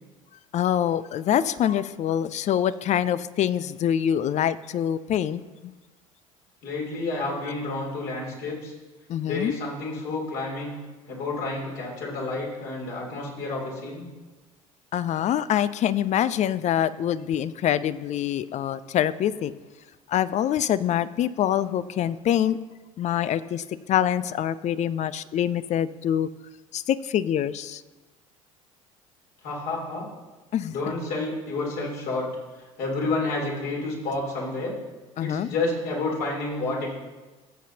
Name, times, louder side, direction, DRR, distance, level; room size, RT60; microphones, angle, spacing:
voice 1, 0.5-5.4 9.1-9.5 14.9-19.5 20.1-22.6 23.0-26.3 26.7-27.8 30.5-30.9 35.2-35.5, left 10 dB, 40° left, 16 dB, 0.5 m, -25 dB
voice 2, 6.6-8.7 9.2-10.8 11.1-14.1 29.4-30.1 30.7-32.3 32.8-34.7 35.2-36.9, left 2 dB, 60° left, -3 dB, 3.4 m, -30 dB
15.5 x 7.4 x 2.9 m, 1.2 s
hypercardioid pair, 65°, 18 cm